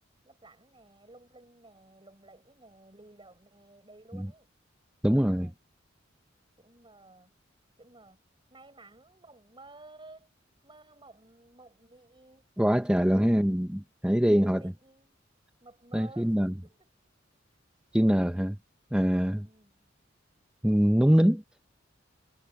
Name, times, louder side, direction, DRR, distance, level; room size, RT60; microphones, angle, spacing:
voice 1, 0.2-4.5 5.2-5.6 6.6-7.3 7.8-8.2 8.5-10.3 10.6-12.5 13.0-13.7 14.3-15.2 15.6-16.9 19.4-19.9, right 2 dB, 25° right, 5.9 m, -54 dB
voice 2, 5.0-5.5 12.6-14.6 15.9-16.5 17.9-18.6 18.9-19.5 20.6-21.4, equal, 5° right, 0.7 m, -23 dB
head